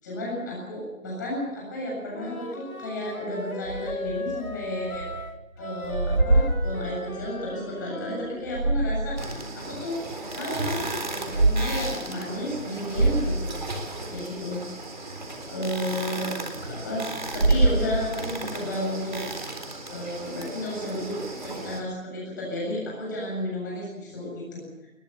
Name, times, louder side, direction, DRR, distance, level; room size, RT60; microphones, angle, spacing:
voice 1, 0.0-5.1 5.6-13.8 14.1-14.6 15.5-16.3 16.6-19.2 19.9-24.9, left 1 dB, 15° left, -3 dB, 7.5 m, -32 dB
Wind instrument woodwind instrument, 2.1-8.4, left 2 dB, 85° left, 2.4 m, -37 dB
sound 1, 3.6-5.3 5.6-7.3 8.2-9.3 9.8-9.9 11.1-11.6 12.0-12.1 12.6-12.7 12.9-14.2 17.2-18.3, right 2 dB, 55° right, 3.8 m, -25 dB
sound 2, 9.2-21.8, right 2 dB, 35° right, 3.9 m, -36 dB
24.5 x 21.5 x 6.8 m, 1.0 s
figure-of-eight pair, 170°, 42 cm